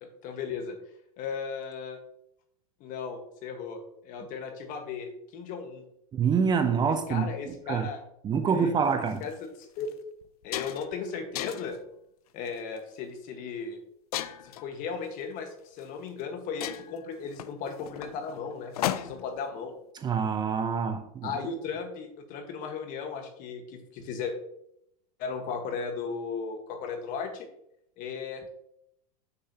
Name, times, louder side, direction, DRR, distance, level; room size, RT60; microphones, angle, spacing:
voice 1, 0.0-0.8 1.2-2.0 2.8-5.8 7.1-8.0 8.5-9.9 10.4-11.8 12.3-13.8 14.4-19.7 21.2-24.4 25.2-27.5 28.0-28.5, left 5 dB, 45° left, 1.5 m, -36 dB
voice 2, 6.1-7.9 8.2-9.3 20.0-21.3, right 6 dB, 20° right, 0.6 m, -26 dB
sound 1, 9.1-9.2 9.8-9.9 10.2-11.0 11.4-11.8 12.5-12.8 14.1-14.7 15.8-15.9 16.2-16.3 16.6-19.4, left 12 dB, 80° left, 0.5 m, -35 dB
7.6 x 6.7 x 2.9 m
supercardioid pair, 120°, 19 cm